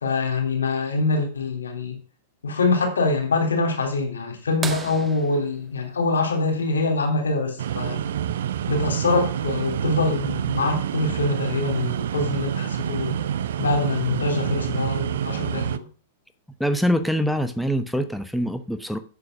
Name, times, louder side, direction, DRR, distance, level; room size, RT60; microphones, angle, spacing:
voice 1, 0.0-1.9 2.4-8.0 8.7-13.2 13.6-15.9, left 3 dB, 80° left, 3.2 m, -24 dB
sound 1, 4.6-7.1 9.0-9.1 11.3-11.4 13.1-13.4 14.2-14.3, right 6 dB, 20° right, 1.5 m, -36 dB
sound 2, 7.6-15.8, right 10 dB, 65° right, 0.6 m, -27 dB
voice 2, 16.6-19.0, equal, ahead, 0.9 m, -24 dB
7.9 x 7.5 x 6.1 m
figure-of-eight pair, 100°, 0 cm